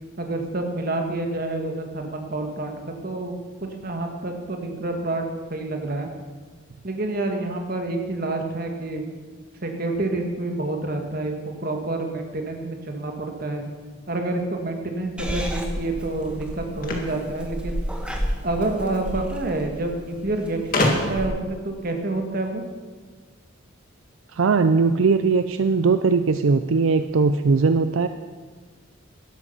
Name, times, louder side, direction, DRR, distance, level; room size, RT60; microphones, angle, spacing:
voice 1, 0.2-6.1 6.8-9.0 9.6-13.6 14.1-17.8 18.4-22.6, right 2 dB, 45° right, 3 dB, 1.8 m, -28 dB
Purr / Meow, 15.2-21.3, equal, 5° right, 1.2 m, -32 dB
sound 1, 16.8-18.2 19.3-19.4 19.7-19.8 20.7-21.4, left 1 dB, 45° left, 1.9 m, -25 dB
voice 2, 24.3-28.1, right 4 dB, 75° right, 10 dB, 0.5 m, -19 dB
12.5 x 11.5 x 5.6 m, 1.4 s
head